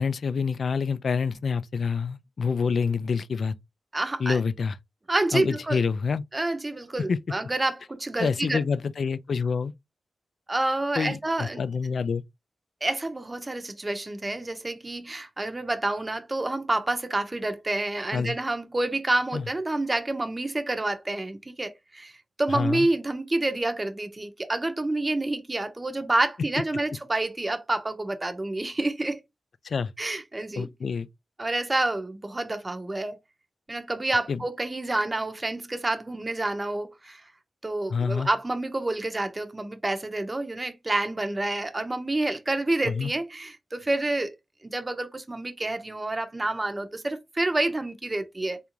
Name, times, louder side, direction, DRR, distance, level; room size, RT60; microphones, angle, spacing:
voice 1, 0.0-3.5 4.2-4.8 5.3-6.2 7.1-7.2 8.2-9.7 11.0-12.2 18.1-18.4 19.3-19.5 22.5-22.9 29.6-29.9 30.6-31.1 34.3-34.4 37.9-38.3 42.8-43.1, left 5 dB, 70° left, 0.3 m, -27 dB
voice 2, 3.9-4.4 5.1-5.8 6.3-8.6 10.5-11.6 12.8-29.2 30.0-30.7 31.4-33.2 33.7-37.2 37.6-44.3 44.6-48.6, right 2 dB, 30° right, 0.7 m, -28 dB
3.4 x 2.5 x 2.9 m
cardioid pair, 45°, 0 cm